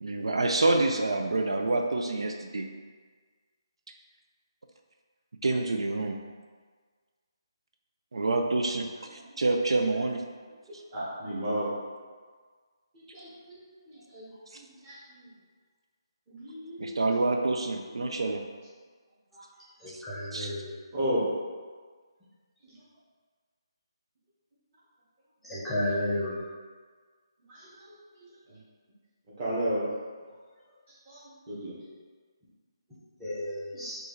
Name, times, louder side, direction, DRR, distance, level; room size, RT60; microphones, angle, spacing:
voice 1, 0.0-2.7 5.4-6.2 8.1-8.9 9.1-10.2 16.8-18.4 19.9-20.0 20.3-20.5, right 2 dB, 90° right, 3 dB, 0.4 m, -27 dB
voice 2, 9.3-9.7 10.9-11.7 12.9-15.3 16.3-17.0 19.3-19.4 20.9-21.3 22.6-22.7 25.6-25.7 27.5-27.9 28.5-28.6 29.4-29.9 31.1-31.2 31.5-31.7 33.7-33.8, equal, 20° right, -9 dB, 1.1 m, -34 dB
voice 3, 19.8-20.7 25.5-26.3 33.2-33.9, left 1 dB, ahead, -12 dB, 0.8 m, -32 dB
4.7 x 2.5 x 3.1 m, 1.5 s
hypercardioid pair, 165°, 3 cm